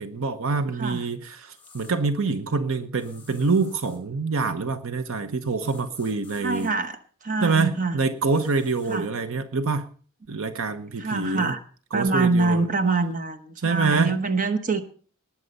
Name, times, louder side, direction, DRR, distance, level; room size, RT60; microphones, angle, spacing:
voice 1, 0.0-6.7 7.4-9.9 10.3-11.5 11.9-12.7 13.6-14.1, right 4 dB, 65° right, 11 dB, 0.9 m, -26 dB
sound 1, 1.5-2.0 3.0-4.0 5.6-6.7 8.3-9.0, left 4 dB, 10° left, 5.1 m, -52 dB
voice 2, 6.4-7.0 7.2-8.0 8.9-9.0 11.0-11.6 11.9-14.8, right 3 dB, 40° right, 9 dB, 1.1 m, -25 dB
19.0 x 7.5 x 5.4 m, 0.43 s
head